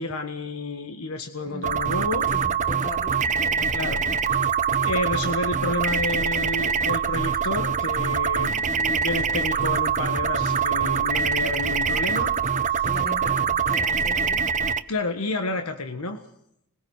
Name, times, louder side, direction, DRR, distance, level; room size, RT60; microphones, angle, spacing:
voice 1, 0.0-2.2 3.7-4.0 4.8-12.3 12.7-12.8 14.9-16.2, left 2 dB, 80° left, 6 dB, 1.6 m, -30 dB
sound 1, 1.6-14.8, right 6 dB, 35° right, 0.9 m, -24 dB
voice 2, 2.3-4.2 12.8-14.5, left 2 dB, 45° left, 4 dB, 3.7 m, -39 dB
20.5 x 20.5 x 6.5 m, 0.75 s
head